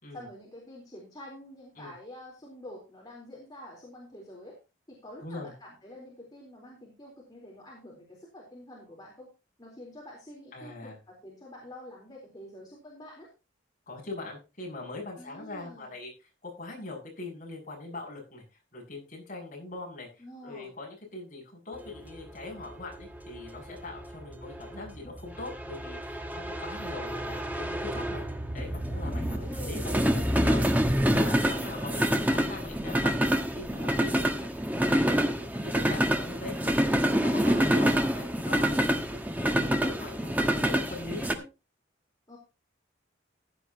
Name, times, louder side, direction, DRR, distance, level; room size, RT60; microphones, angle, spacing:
voice 1, 0.1-4.6 4.9-9.3 9.6-13.3 15.2-15.9 20.2-20.7 29.0-29.8 31.5-31.8 42.3-42.4, left 1 dB, 20° left, -3 dB, 4.0 m, -47 dB
voice 2, 5.2-5.5 10.5-11.0 13.9-16.1 16.4-18.4 18.7-28.2 28.5-33.3 33.5-34.5 34.9-41.4, left 2 dB, 40° left, -1 dB, 7.3 m, -42 dB
sound 1, 21.8-41.3, equal, 10° right, 1.3 m, -27 dB
15.5 x 10.5 x 2.9 m, 0.29 s
head